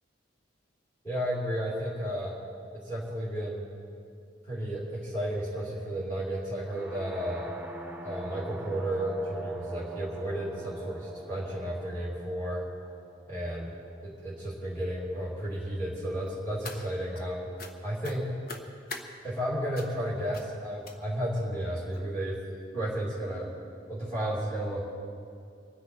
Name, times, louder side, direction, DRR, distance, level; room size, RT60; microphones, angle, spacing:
voice 1, 1.0-2.3 2.8-3.6 4.4-7.5 8.0-12.6 13.3-13.8 14.0-17.5 17.8-18.3 19.2-22.4 22.7-23.5 23.9-24.8, right 1 dB, 15° left, -7 dB, 2.7 m, -33 dB
sound 1, 6.7-14.5, right 2 dB, 10° right, 1.1 m, -44 dB
sound 2, 16.3-17.2 17.6-17.7 18.0-19.1 19.7-20.0 20.3-20.5 20.8-21.3 21.9-22.0 22.4-22.6 22.9-23.0, left 3 dB, 50° left, 1.1 m, -43 dB
24.5 x 10.0 x 4.5 m, 2.4 s
head